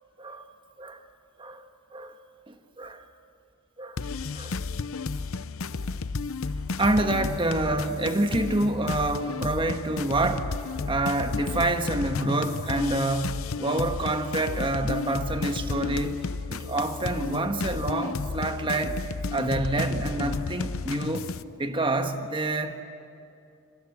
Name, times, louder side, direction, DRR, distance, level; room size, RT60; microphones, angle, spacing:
voice 1, 2.5-3.1 3.8-4.0 4.3-4.5 6.8-10.6 10.9-16.2 16.5-19.0 19.3-21.3 21.6-22.7, right 2 dB, 25° right, 6 dB, 1.5 m, -27 dB
sound 1, 4.0-21.4, left 4 dB, 80° left, 0.7 m, -32 dB
25.0 x 24.5 x 8.2 m, 2.6 s
head